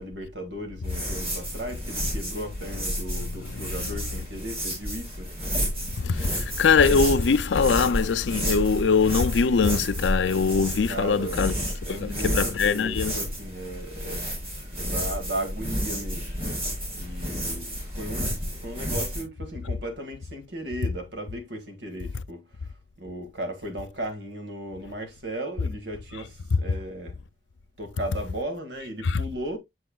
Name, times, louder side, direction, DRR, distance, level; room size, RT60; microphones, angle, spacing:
voice 1, 0.0-5.3 10.8-11.5 11.8-14.3 14.8-16.4 17.0-22.5 23.0-27.2 27.8-29.6, right 1 dB, 75° right, 2.2 m, -36 dB
sound 1, 0.8-19.2, equal, 30° right, 5.3 m, -31 dB
voice 2, 6.0-11.5 11.9-13.1 29.0-29.2, left 5 dB, 80° left, 0.5 m, -22 dB
8.0 x 7.0 x 2.3 m
head